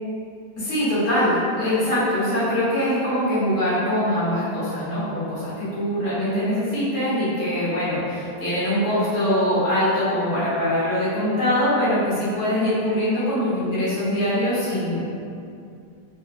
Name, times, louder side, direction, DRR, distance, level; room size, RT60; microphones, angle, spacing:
voice 1, 0.6-15.0, left 1 dB, 60° left, -11 dB, 1.6 m, -23 dB
4.4 x 2.1 x 2.5 m, 2.5 s
omnidirectional pair, 1.8 m